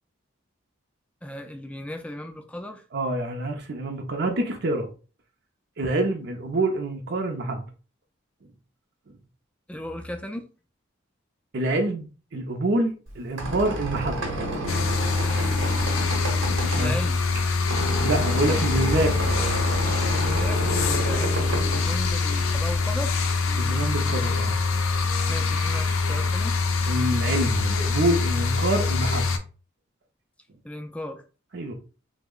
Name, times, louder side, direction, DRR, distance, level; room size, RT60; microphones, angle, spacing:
voice 1, 1.2-2.8 9.7-10.5 16.8-17.2 20.0-23.2 25.3-26.6 30.6-31.2, left 1 dB, 5° left, 0.3 m, -36 dB
voice 2, 2.9-4.9 5.8-7.6 11.5-14.4 16.8-16.9 18.0-19.2 23.5-24.6 26.9-29.2 31.5-31.7, right 1 dB, 55° right, 0.5 m, -26 dB
Squeak, 13.1-22.7, right 1 dB, 75° right, 0.9 m, -30 dB
sound 1, 14.0-19.6 20.3-25.8, left 1 dB, 25° left, 0.7 m, -42 dB
sound 2, 14.7-29.4, left 4 dB, 90° left, 0.5 m, -24 dB
3.3 x 2.0 x 3.6 m
head